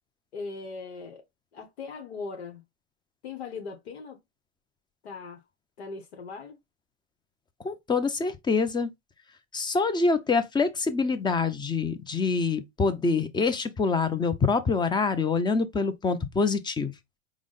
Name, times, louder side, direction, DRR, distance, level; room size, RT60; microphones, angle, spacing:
voice 1, 0.3-1.2 1.5-2.6 3.2-4.2 5.0-5.4 5.8-6.6, left 4 dB, 80° left, 1.0 m, -39 dB
voice 2, 7.6-8.9 9.5-16.9, left 4 dB, 15° left, 0.6 m, -25 dB
4.9 x 2.2 x 3.6 m
hypercardioid pair, 100°, 32 cm